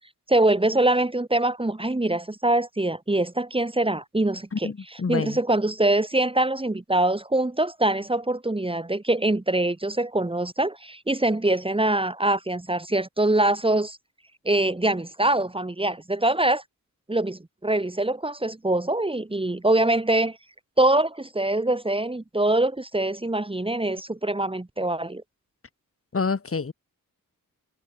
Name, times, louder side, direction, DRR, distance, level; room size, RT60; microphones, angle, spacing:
voice 1, 0.3-14.0 14.4-16.6 17.1-20.4 20.8-25.2, right 2 dB, 15° right, 3.0 m, -24 dB
voice 2, 4.5-5.4 26.1-26.7, left 4 dB, 40° left, 5.1 m, -27 dB
cardioid pair, 75°, 33 cm